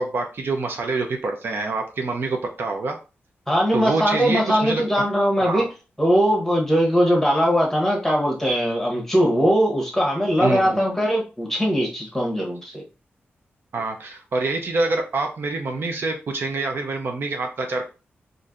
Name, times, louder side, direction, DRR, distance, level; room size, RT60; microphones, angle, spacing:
voice 1, 0.0-3.0 3.7-4.8 5.4-5.7 10.4-10.8 13.7-17.9, right 3 dB, 60° right, 4 dB, 0.6 m, -26 dB
voice 2, 3.5-5.7 6.0-12.8, equal, 5° left, -1 dB, 1.0 m, -20 dB
4.3 x 2.6 x 2.5 m, 0.32 s
wide cardioid pair, 125°, 4 cm